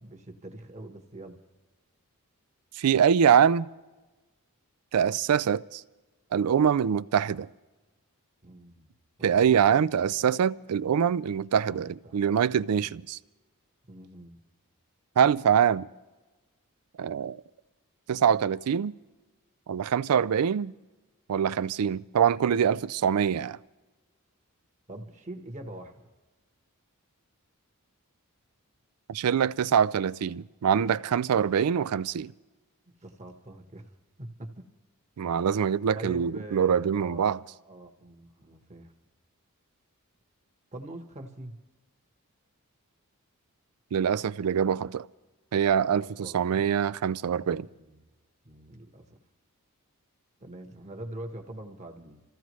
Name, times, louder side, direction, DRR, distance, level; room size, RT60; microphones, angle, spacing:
voice 1, 0.0-1.4 8.4-8.9 9.5-10.2 11.6-12.3 13.9-14.4 24.9-26.1 33.0-33.9 34.2-34.7 35.9-37.3 37.6-38.9 40.7-41.6 46.0-46.7 47.6-48.1 48.4-49.2 50.4-52.2, right 1 dB, 30° right, 1.2 m, -43 dB
voice 2, 2.8-3.7 4.9-5.8 6.3-7.5 9.2-13.2 15.2-15.9 17.0-17.4 18.1-19.0 19.7-20.7 21.3-23.6 29.1-32.3 35.2-37.4 43.9-45.1 45.5-47.7, right 8 dB, 85° right, 0.4 m, -24 dB
26.5 x 15.0 x 3.1 m
head